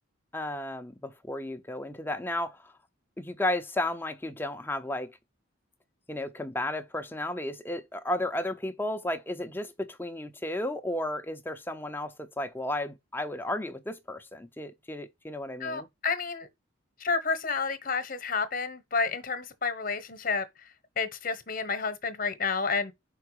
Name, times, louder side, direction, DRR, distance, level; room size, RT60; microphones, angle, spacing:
voice 1, 0.3-2.7 3.2-5.1 6.1-15.9, left 1 dB, 10° left, 0.6 m, -33 dB
voice 2, 15.6-16.5 17.0-20.4 21.0-22.9, left 4 dB, 40° left, 1.0 m, -30 dB
5.8 x 4.7 x 4.7 m
head